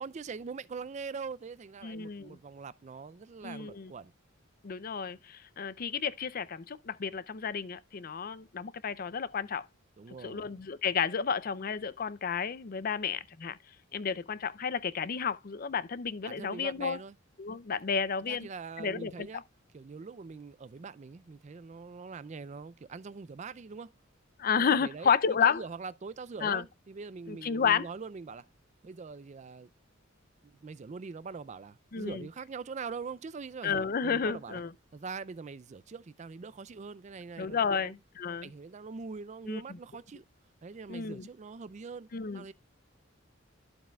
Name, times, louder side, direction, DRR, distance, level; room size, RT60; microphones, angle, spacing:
voice 1, 0.0-4.1 10.0-10.5 16.2-17.1 18.3-19.4 19.7-23.9 24.6-25.1 25.4-28.5 28.8-29.7 30.4-34.6 34.9-37.9 38.4-40.2 40.6-42.1 42.3-42.5, right 5 dB, 35° right, 0.4 m, -43 dB
voice 2, 1.8-2.4 3.4-3.9 4.6-9.7 10.2-13.6 13.9-17.0 17.4-18.5 18.8-19.3 24.4-25.6 26.4-26.6 27.3-27.9 31.9-32.2 33.6-34.7 37.4-38.5 39.5-39.6 40.9-41.3 42.1-42.4, left 6 dB, 45° left, 0.5 m, -31 dB
11.5 x 7.5 x 2.3 m
head